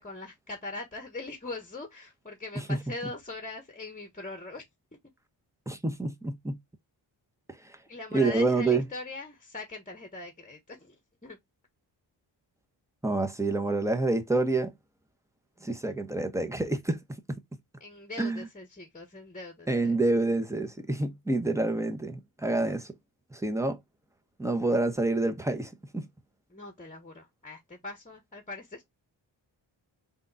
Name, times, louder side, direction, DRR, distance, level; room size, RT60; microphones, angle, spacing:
voice 1, 0.0-4.6 7.9-11.0 11.2-11.4 17.8-20.0 26.5-28.9, left 2 dB, 15° left, 1.2 m, -41 dB
voice 2, 5.7-6.6 7.5-7.8 8.1-8.9 13.0-14.7 15.6-17.0 17.3-17.4 18.2-18.5 19.7-22.9 23.3-23.8 24.4-26.1, right 2 dB, 5° right, 1.1 m, -28 dB
3.7 x 2.6 x 3.9 m
supercardioid pair, 45°, 48 cm